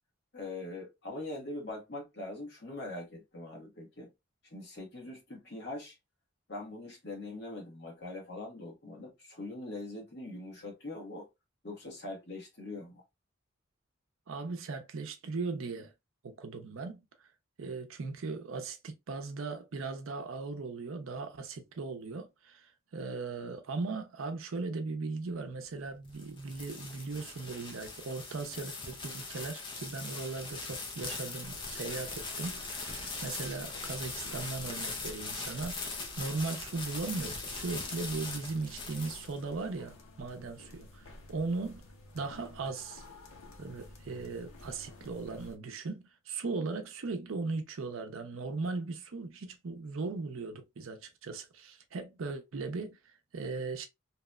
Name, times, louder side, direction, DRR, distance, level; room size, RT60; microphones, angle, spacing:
voice 1, 0.3-4.1 4.5-6.0 6.5-11.3 11.6-13.0, left 2 dB, 50° left, 1.0 m, -42 dB
voice 2, 14.3-15.9 16.2-17.0 17.6-41.8 42.1-43.0 43.6-53.9, right 3 dB, 80° right, 0.5 m, -38 dB
sound 1, 25.8-39.7, left 3 dB, 25° left, 0.4 m, -41 dB
sound 2, 31.4-45.6, left 1 dB, 85° left, 0.6 m, -52 dB
2.8 x 2.1 x 2.3 m
head